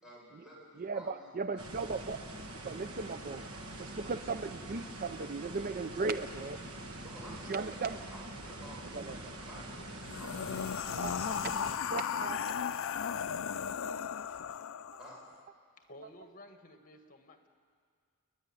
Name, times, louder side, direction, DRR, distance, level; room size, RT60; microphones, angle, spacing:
voice 1, 0.0-1.6 7.0-9.9 10.2-11.4 12.1-12.7 15.0-15.2, equal, 5° right, -5 dB, 6.7 m, -52 dB
voice 2, 0.8-2.2 2.6-3.5 3.8-6.6 7.4-8.0 8.9-9.2 11.0-11.1 11.9-12.4, right 4 dB, 40° right, 11 dB, 0.5 m, -37 dB
sound 1, 1.6-11.8, right 1 dB, 75° right, 1.9 m, -45 dB
sound 2, 10.0-15.3, left 7 dB, 65° left, 0.5 m, -36 dB
voice 3, 15.8-17.5, left 1 dB, 40° left, 6 dB, 1.7 m, -53 dB
29.0 x 10.5 x 9.8 m, 2.1 s
head